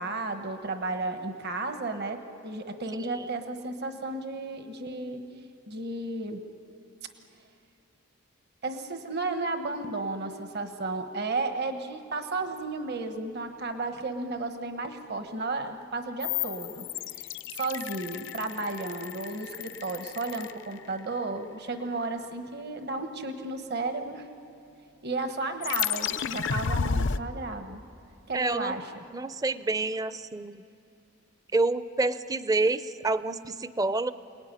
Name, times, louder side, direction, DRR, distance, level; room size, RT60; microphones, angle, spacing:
voice 1, 0.0-5.2 5.7-6.4 8.6-16.9 17.1-24.3 25.0-27.8 28.3-29.0, right 3 dB, 55° right, 7 dB, 1.3 m, -33 dB
sound 1, 16.2-21.2 25.6-27.2, left 7 dB, 60° left, 0.6 m, -32 dB
voice 2, 28.3-28.8 29.1-30.6 31.5-34.1, right 2 dB, 20° right, 14 dB, 0.5 m, -28 dB
28.5 x 19.5 x 9.8 m, 2.5 s
head